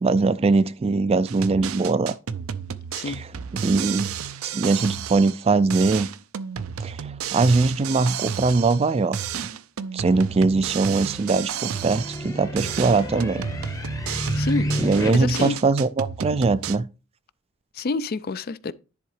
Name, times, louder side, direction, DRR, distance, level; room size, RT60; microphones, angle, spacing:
voice 1, 0.0-2.2 3.1-4.1 4.5-6.1 6.8-9.2 9.9-13.4 14.8-16.9, right 3 dB, 30° right, 0.3 m, -21 dB
sound 1, 1.3-5.4 5.7-8.9 9.1-12.3 12.6-16.8, right 8 dB, 80° right, 0.5 m, -32 dB
voice 2, 2.9-3.3 14.4-14.7 15.1-15.6 17.7-18.7, left 3 dB, 45° left, 0.4 m, -28 dB
sound 2, 10.1-15.1, equal, 15° left, 0.8 m, -31 dB
10.5 x 3.7 x 4.8 m
head